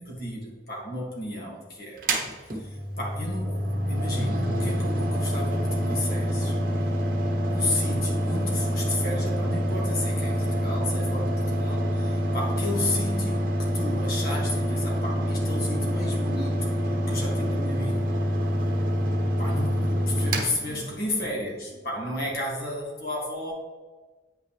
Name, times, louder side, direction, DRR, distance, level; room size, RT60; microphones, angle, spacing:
voice 1, 0.0-2.0 2.5-3.6 3.9-6.9 7.5-16.7 17.1-18.1 19.4-23.5, left 1 dB, 55° left, -3 dB, 2.2 m, -33 dB
Mechanical fan, 2.0-21.4, equal, 50° right, 1.0 m, -26 dB
9.0 x 6.1 x 3.3 m, 1.3 s
head